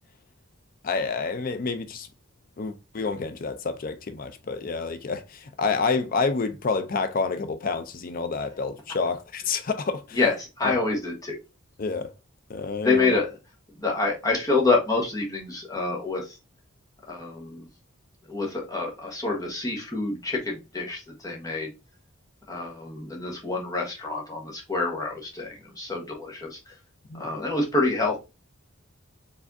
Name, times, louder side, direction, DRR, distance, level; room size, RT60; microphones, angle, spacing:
voice 1, 0.8-2.1 2.6-10.2 10.6-10.8 11.8-12.1 12.5-13.2 27.1-27.4, left 4 dB, 40° left, 0.4 m, -28 dB
voice 2, 10.1-11.4 12.8-13.3 13.8-16.4 17.1-17.7 18.3-21.7 22.5-26.7 27.1-28.2, left 3 dB, 15° left, 1.2 m, -27 dB
4.7 x 3.4 x 2.6 m
head